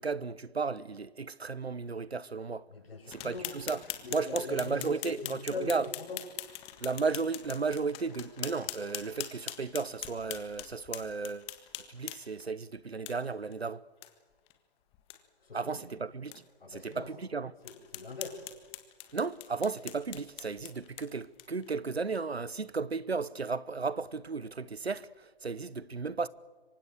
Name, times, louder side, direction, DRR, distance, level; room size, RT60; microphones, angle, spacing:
voice 1, 0.0-2.7 3.1-3.8 4.1-5.9 6.8-11.5 11.8-13.8 15.5-16.4 16.7-17.5 19.1-26.3, right 4 dB, 90° right, 1.0 m, -34 dB
voice 2, 2.7-3.5 4.0-6.2 15.4-15.9 16.6-17.1 17.6-18.4, left 3 dB, 70° left, 7.6 m, -42 dB
sound 1, 3.1-12.4 13.1-13.2 13.5-13.6 14.0-14.1 14.5-14.6 14.9-15.2 15.7-15.8 16.3-16.4 16.9-17.0 17.6-21.7, left 15 dB, 20° left, 1.7 m, -42 dB
27.0 x 24.0 x 6.7 m
figure-of-eight pair, 140°, 31 cm